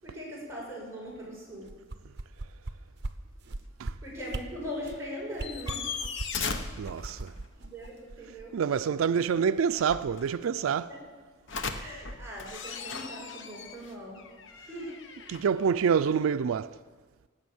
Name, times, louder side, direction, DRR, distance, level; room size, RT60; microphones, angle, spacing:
voice 1, 0.0-1.7 4.0-5.9 7.5-8.6 10.9-11.0 11.7-14.2 14.7-15.0, equal, 15° right, 6.4 m, -40 dB
sound 1, 1.1-1.3 1.5-1.6 2.0-2.4 4.2-4.3 4.6-4.7 5.2-7.7 9.6-10.6 11.5-16.2, left 5 dB, 65° left, 1.1 m, -38 dB
sound 2, 1.7-2.7 3.0-3.1 3.5-3.9 4.3-4.4 4.8-5.0 5.3-6.5 6.8-8.4 8.8-8.9, right 2 dB, 55° right, 0.8 m, -37 dB
voice 2, 6.8-7.3 8.5-10.9 15.3-16.8, right 6 dB, 85° right, 0.4 m, -27 dB
18.5 x 8.4 x 7.2 m
head